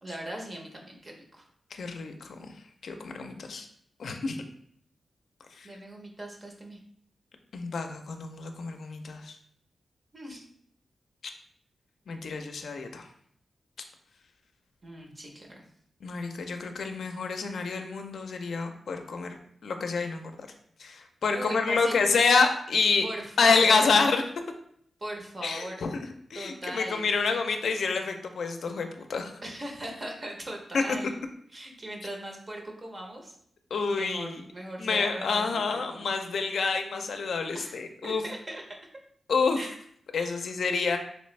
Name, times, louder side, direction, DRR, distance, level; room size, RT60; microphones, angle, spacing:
voice 1, 0.0-1.4 5.6-6.8 10.1-10.5 14.8-15.6 21.3-22.0 23.0-23.9 25.0-25.8 26.3-27.1 29.4-31.2 31.5-33.4 33.9-35.6 35.9-36.4 37.5-38.9 39.6-39.8 40.1-40.5, right 1 dB, 35° right, 1 dB, 0.7 m, -39 dB
voice 2, 1.7-2.5 2.8-3.7 4.0-4.4 5.6-5.7 7.5-9.4 12.1-13.0 16.0-19.3 19.6-20.4 20.8-23.0 23.4-24.2 25.4-25.9 26.3-29.3 30.7-30.8 33.7-34.4 34.8-38.2 39.3-39.6 40.1-41.0, left 4 dB, 75° left, 5 dB, 0.4 m, -27 dB
3.3 x 2.9 x 3.2 m, 0.65 s
wide cardioid pair, 95°, 0 cm